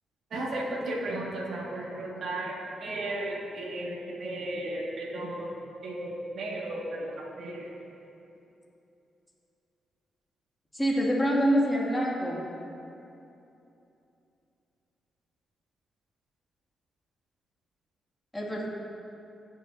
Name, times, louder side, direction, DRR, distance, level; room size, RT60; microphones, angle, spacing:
voice 1, 0.3-2.5 2.8-5.5 5.8-7.1 7.4-7.7, right 1 dB, 65° right, -4 dB, 1.8 m, -34 dB
voice 2, 10.7-12.4 18.3-18.7, equal, 10° left, -4 dB, 2.2 m, -25 dB
17.5 x 6.2 x 2.7 m, 2.8 s
supercardioid pair, 45°, 0 cm